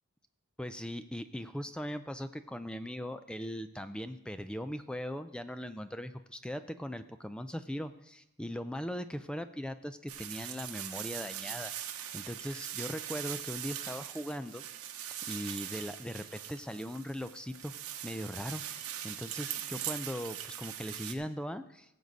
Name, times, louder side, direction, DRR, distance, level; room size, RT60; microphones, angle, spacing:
voice 1, 0.6-14.6 15.3-17.7 18.0-21.9, equal, 5° left, 10 dB, 0.3 m, -39 dB
sound 1, 10.1-21.1, right 11 dB, 85° right, 1.0 m, -41 dB
18.5 x 7.7 x 4.0 m, 0.87 s
head